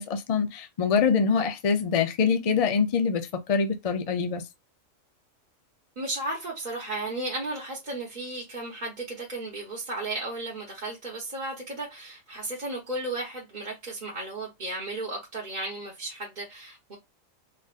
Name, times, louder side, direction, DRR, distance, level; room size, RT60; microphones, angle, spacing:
voice 1, 0.0-4.4, left 5 dB, 45° left, 0.5 m, -24 dB
voice 2, 6.0-17.0, right 2 dB, 40° right, 1.1 m, -34 dB
4.4 x 2.5 x 2.4 m
omnidirectional pair, 1.3 m